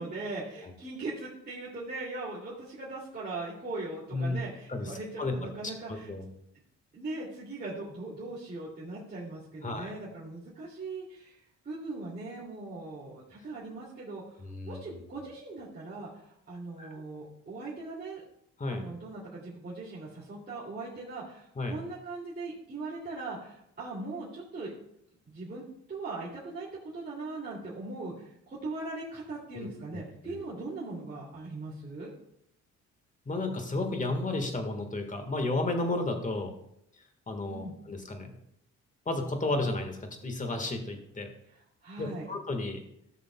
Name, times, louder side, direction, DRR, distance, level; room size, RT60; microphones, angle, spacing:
voice 1, 0.0-6.1 6.9-11.4 11.6-18.2 18.7-24.7 25.3-32.1 37.5-37.8 41.5-42.3, right 2 dB, 35° right, -7 dB, 2.6 m, -40 dB
voice 2, 4.7-5.3 5.6-5.7 6.1-6.3 9.6-9.9 14.4-15.0 16.8-17.0 18.6-18.9 21.6-21.8 29.5-30.4 33.2-36.5 37.3-38.3 39.0-41.3 42.0-42.8, left 2 dB, 25° left, 5 dB, 1.6 m, -33 dB
15.5 x 6.5 x 2.3 m, 0.76 s
cardioid pair, 90°, 30 cm